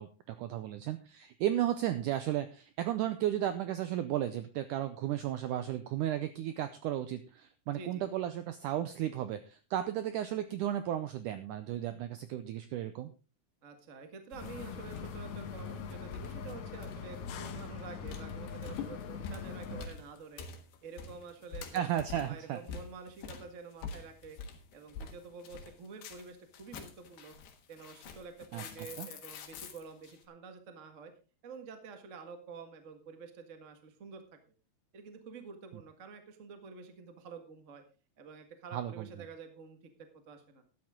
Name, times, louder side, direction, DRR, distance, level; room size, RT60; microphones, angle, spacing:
voice 1, 0.0-13.1 19.7-19.8 21.7-22.6 28.5-28.6 29.0-29.1 35.7-35.8 38.7-39.1, right 11 dB, 90° right, 11 dB, 1.8 m, -34 dB
voice 2, 7.7-8.1 13.6-20.4 20.8-21.9 22.3-24.4 24.7-27.3 27.7-31.1 31.4-34.2 34.9-37.8 38.2-39.8 40.3-40.6, right 5 dB, 60° right, 7 dB, 0.8 m, -48 dB
sound 1, 14.3-30.2, left 5 dB, 85° left, 3.5 m, -46 dB
sound 2, 14.4-19.9, left 7 dB, 60° left, 2.0 m, -42 dB
13.0 x 10.5 x 3.7 m, 0.34 s
omnidirectional pair, 4.5 m